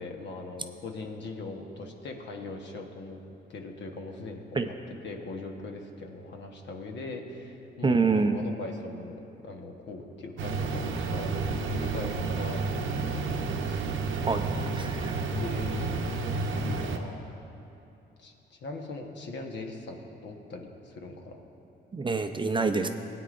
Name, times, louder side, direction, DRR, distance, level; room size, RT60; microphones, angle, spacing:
voice 1, 0.0-3.2 3.5-4.7 5.0-13.8 15.4-17.3 18.2-21.4, left 3 dB, 65° left, 2 dB, 1.2 m, -41 dB
voice 2, 7.8-8.4 14.3-14.4 14.7-15.2 21.9-22.9, right 4 dB, 25° right, 7 dB, 0.5 m, -26 dB
sound 1, 10.4-17.0, right 3 dB, 80° right, 0.8 m, -30 dB
17.5 x 9.2 x 2.5 m, 2.9 s
cardioid pair, 90°, 20 cm